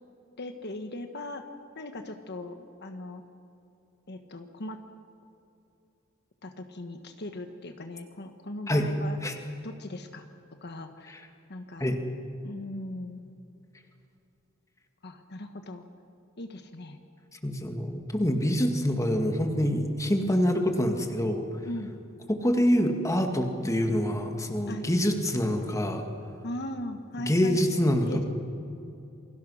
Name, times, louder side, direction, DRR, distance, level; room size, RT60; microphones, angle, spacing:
voice 1, 0.4-1.5 1.7-3.2 4.1-4.8 6.4-9.2 9.6-10.3 10.6-11.2 11.5-11.9 12.4-13.2 15.0-15.8 16.4-17.0 21.6-21.9 24.7-24.9 26.4-27.7 28.0-28.2, left 1 dB, 55° left, 6 dB, 1.3 m, -39 dB
voice 2, 17.4-21.5 22.3-26.0 27.3-28.2, equal, 15° left, 4 dB, 2.1 m, -26 dB
28.0 x 23.0 x 6.5 m, 2.7 s
head